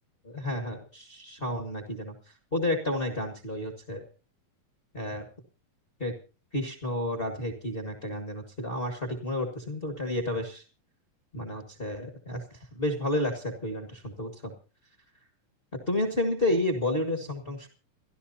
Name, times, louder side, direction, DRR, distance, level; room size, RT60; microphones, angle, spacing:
voice 1, 0.2-2.1 2.5-4.0 4.9-5.2 6.0-6.1 6.5-10.6 11.3-14.5 15.9-17.7, left 1 dB, 30° left, 4 dB, 1.0 m, -31 dB
29.5 x 12.0 x 2.8 m, 0.34 s
omnidirectional pair, 3.9 m